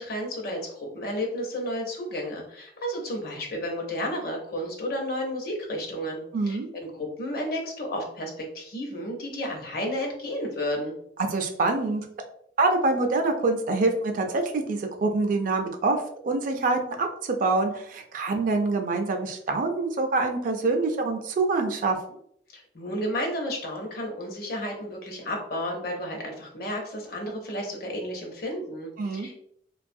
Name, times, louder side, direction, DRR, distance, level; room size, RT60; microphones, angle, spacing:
voice 1, 0.0-10.9 22.5-29.4, equal, 60° left, 1 dB, 0.7 m, -32 dB
voice 2, 6.3-6.7 11.2-12.1 12.6-22.0 29.0-29.3, right 3 dB, 50° right, 5 dB, 0.4 m, -25 dB
2.5 x 2.3 x 2.6 m, 0.67 s
head